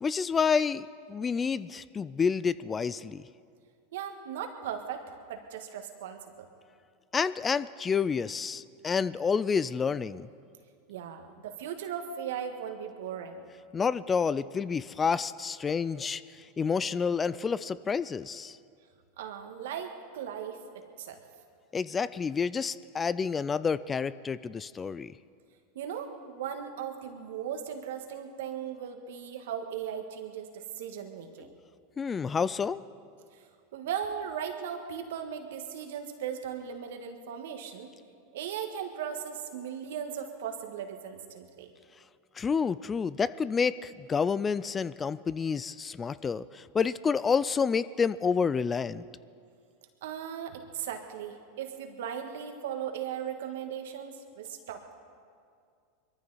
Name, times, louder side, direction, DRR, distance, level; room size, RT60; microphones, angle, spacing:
voice 1, 0.0-3.2 7.1-10.3 13.7-18.6 21.7-25.1 32.0-32.8 42.4-49.0, left 6 dB, 20° left, 17 dB, 0.4 m, -29 dB
voice 2, 3.9-6.4 10.9-13.5 19.2-20.6 21.0-21.2 25.7-31.5 33.3-37.9 38.3-41.7 50.0-54.9, right 8 dB, 75° right, 5 dB, 1.7 m, -38 dB
22.5 x 14.0 x 4.2 m, 2.2 s
hypercardioid pair, 105°, 0 cm